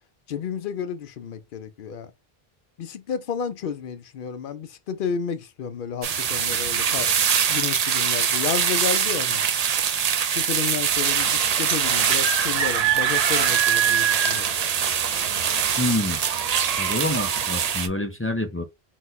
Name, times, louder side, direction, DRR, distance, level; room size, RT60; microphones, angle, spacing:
voice 1, 0.3-2.1 2.8-9.4 10.3-14.5, left 7 dB, 60° left, 0.7 m, -31 dB
sound 1, 6.0-17.9, right 8 dB, 50° right, 0.5 m, -23 dB
voice 2, 15.8-16.2 16.8-18.6, left 2 dB, 25° left, 0.3 m, -27 dB
4.1 x 2.2 x 3.8 m
omnidirectional pair, 1.0 m